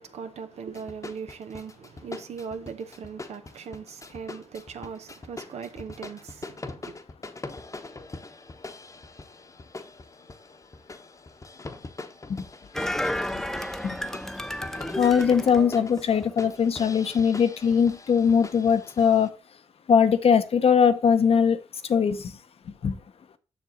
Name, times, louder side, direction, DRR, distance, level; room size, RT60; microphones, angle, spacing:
voice 1, 0.0-7.0, right 6 dB, 75° right, 0.8 m, -39 dB
sound 1, 0.8-19.3, left 3 dB, 30° left, 0.9 m, -43 dB
sound 2, 12.7-16.5 16.9-17.0, left 1 dB, 5° left, 0.6 m, -32 dB
voice 2, 14.9-19.3 19.9-21.6 21.8-22.3 22.8-23.0, left 7 dB, 60° left, 0.8 m, -21 dB
7.2 x 6.1 x 3.9 m
cardioid pair, 65°, 11 cm